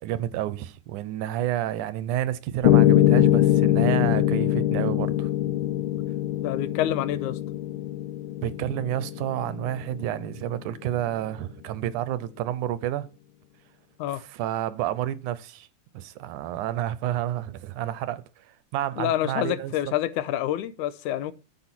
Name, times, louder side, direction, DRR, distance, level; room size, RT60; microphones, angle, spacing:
voice 1, 0.0-5.3 8.4-13.1 14.3-15.7 15.9-18.2 18.7-19.7, right 12 dB, 85° right, 2.2 m, -30 dB
Piano, 2.6-10.7, left 13 dB, 75° left, 1.3 m, -23 dB
voice 2, 6.4-7.4 14.0-14.2 19.0-21.3, left 12 dB, 90° left, 2.2 m, -27 dB
9.8 x 7.7 x 4.4 m
omnidirectional pair, 3.5 m